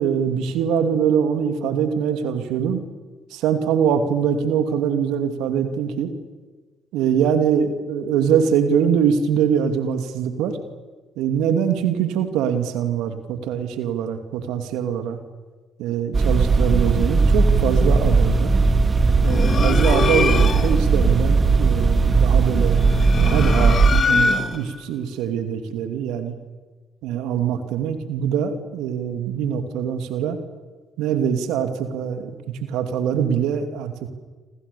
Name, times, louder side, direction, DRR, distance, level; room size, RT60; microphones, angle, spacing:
voice 1, 0.0-2.8 3.3-6.1 6.9-10.6 11.2-15.2 15.8-18.5 19.2-22.8 23.2-26.4 27.0-30.4 31.0-34.1, right 8 dB, 75° right, 8 dB, 2.6 m, -23 dB
sound 1, 16.1-24.0, right 4 dB, 35° right, 2.2 m, -17 dB
sound 2, 19.2-20.8 22.7-24.8, left 5 dB, 50° left, 2.4 m, -23 dB
29.5 x 26.0 x 7.0 m, 1.3 s
hypercardioid pair, 50°, 0 cm